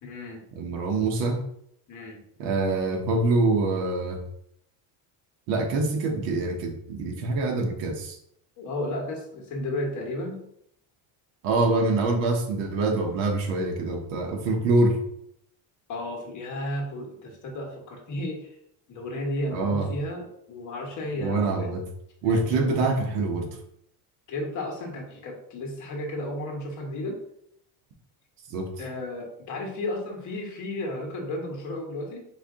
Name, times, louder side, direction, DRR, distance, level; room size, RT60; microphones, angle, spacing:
voice 1, 0.0-0.4 1.9-2.2 8.6-10.4 15.9-18.5 18.9-21.7 22.2-22.8 24.3-27.2 28.8-32.2, left 1 dB, 40° left, 1 dB, 1.2 m, -33 dB
voice 2, 0.5-1.4 2.4-4.2 5.5-8.2 11.4-15.0 19.5-19.9 21.2-21.8 22.2-23.5 28.5-28.7, right 3 dB, 75° right, 1 dB, 1.2 m, -25 dB
4.6 x 2.8 x 3.6 m, 0.73 s
cardioid pair, 155°, 46 cm